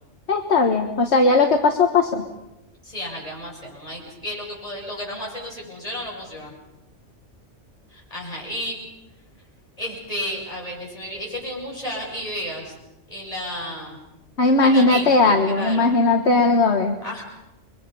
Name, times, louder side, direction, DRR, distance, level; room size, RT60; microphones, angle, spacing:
voice 1, 0.3-2.3 14.4-17.0, left 3 dB, 60° left, 4 dB, 1.7 m, -18 dB
voice 2, 2.8-6.5 7.9-8.8 9.8-12.7 13.1-14.0 14.6-15.9 17.0-17.2, equal, 30° left, -3 dB, 7.8 m, -32 dB
30.0 x 23.0 x 5.5 m, 0.92 s
omnidirectional pair, 1.3 m